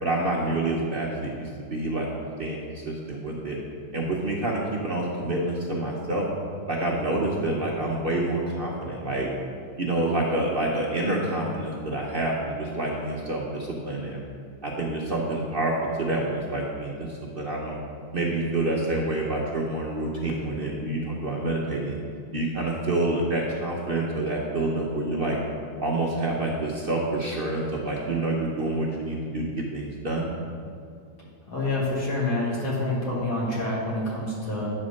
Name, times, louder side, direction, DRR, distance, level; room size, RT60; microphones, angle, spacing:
voice 1, 0.0-3.6 3.9-6.3 6.7-9.3 9.8-14.2 14.6-17.8 18.1-22.0 22.3-25.4 25.8-30.3, right 2 dB, 50° right, -3 dB, 0.7 m, -27 dB
voice 2, 31.5-34.7, left 2 dB, 65° left, -5 dB, 2.4 m, -27 dB
8.9 x 4.3 x 6.4 m, 2.4 s
omnidirectional pair, 1.9 m